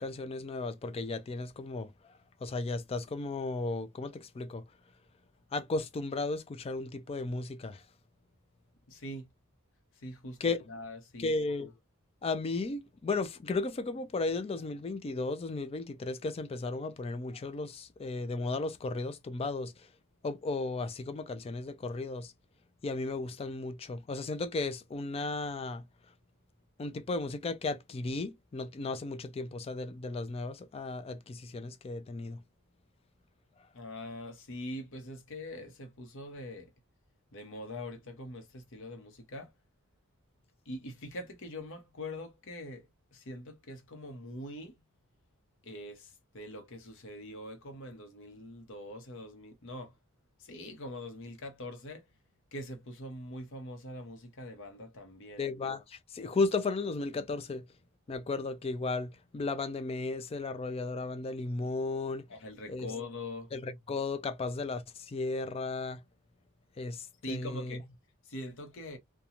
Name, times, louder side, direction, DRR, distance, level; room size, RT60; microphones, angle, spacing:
voice 1, 0.0-1.9 2.4-4.7 5.5-7.8 10.4-10.6 11.2-11.7 12.2-19.9 20.2-22.3 22.8-25.8 26.8-32.4 55.4-57.6 58.1-62.3 62.7-62.9 63.5-66.0 66.8-67.8, left 3 dB, 25° left, 0.3 m, -35 dB
voice 2, 8.9-9.3 10.0-11.3 33.7-36.7 37.3-39.5 40.7-42.8 43.1-44.7 45.6-49.9 50.4-52.0 52.5-55.4 62.3-63.5 67.2-67.8 68.3-69.0, left 1 dB, 65° left, 0.8 m, -43 dB
2.8 x 2.2 x 2.4 m
head